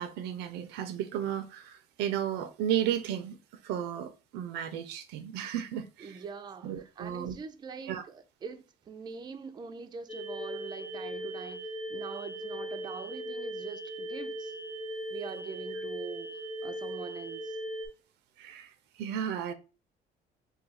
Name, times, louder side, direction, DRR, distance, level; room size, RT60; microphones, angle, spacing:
voice 1, 0.0-3.4 3.6-6.2 6.6-7.4 7.9-8.0 18.4-19.5, right 10 dB, 85° right, 0.5 m, -34 dB
voice 2, 6.0-14.5 15.1-16.3 16.6-17.6, right 5 dB, 25° right, 0.4 m, -43 dB
sound 1, 10.1-17.9, right 1 dB, 5° right, 0.8 m, -38 dB
2.4 x 2.3 x 4.0 m
cardioid pair, 110°, 17 cm